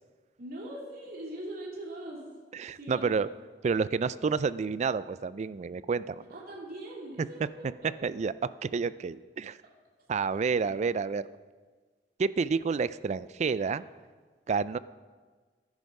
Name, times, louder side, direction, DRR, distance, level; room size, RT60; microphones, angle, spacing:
voice 1, 0.4-2.2 2.7-3.3 6.3-7.9 10.5-10.7, right 1 dB, 60° right, -4 dB, 3.0 m, -41 dB
voice 2, 2.5-3.3 3.6-6.3 8.0-8.3 8.6-9.6 10.1-11.2 12.2-13.8 14.5-14.8, right 5 dB, 40° right, 17 dB, 0.3 m, -29 dB
13.0 x 10.0 x 5.3 m, 1.4 s
head